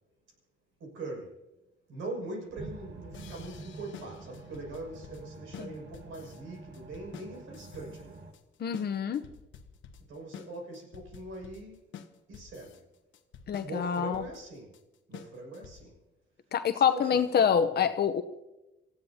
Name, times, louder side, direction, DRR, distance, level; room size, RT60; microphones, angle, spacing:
voice 1, 0.8-1.4 1.9-8.3 10.1-11.8 12.3-12.9 13.6-14.8 15.1-15.9 16.7-17.8, right 2 dB, 80° right, 0 dB, 6.6 m, -42 dB
sound 1, 2.5-8.3, right 3 dB, 60° right, 1.7 m, -47 dB
sound 2, 3.1-16.0, left 8 dB, 75° left, 1.1 m, -49 dB
voice 2, 8.6-9.2 13.5-14.2 16.5-18.2, left 7 dB, 55° left, 9 dB, 0.9 m, -26 dB
27.5 x 15.5 x 2.9 m, 1.0 s
cardioid pair, 90°, 20 cm